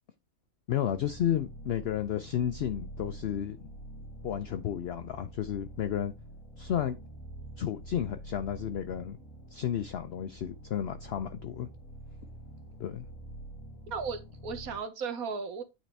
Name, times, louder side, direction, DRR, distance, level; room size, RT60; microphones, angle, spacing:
voice 1, 0.7-3.6 4.2-6.1 6.6-7.0 7.6-9.2 9.5-11.7 12.8-13.1, left 10 dB, 60° left, 0.7 m, -32 dB
sound 1, 0.9-14.8, right 1 dB, 20° left, 1.5 m, -46 dB
voice 2, 13.9-15.6, right 5 dB, 80° right, 1.5 m, -35 dB
9.2 x 4.2 x 3.3 m
omnidirectional pair, 1.5 m